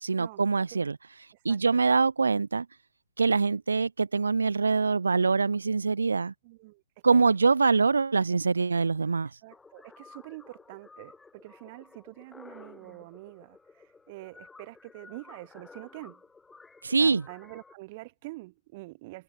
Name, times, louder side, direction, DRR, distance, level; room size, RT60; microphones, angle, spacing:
voice 1, 0.0-1.0 1.4-2.7 3.2-6.3 7.0-9.3 16.8-17.3, right 4 dB, 70° right, 0.8 m, -24 dB
voice 2, 1.5-1.8 6.4-6.8 7.1-7.2 9.4-16.2 17.0-19.2, right 22 dB, 40° right, 2.2 m, -46 dB
sound 1, 9.5-17.8, left 4 dB, 10° left, 5.0 m, -53 dB
figure-of-eight pair, 115°, 0 cm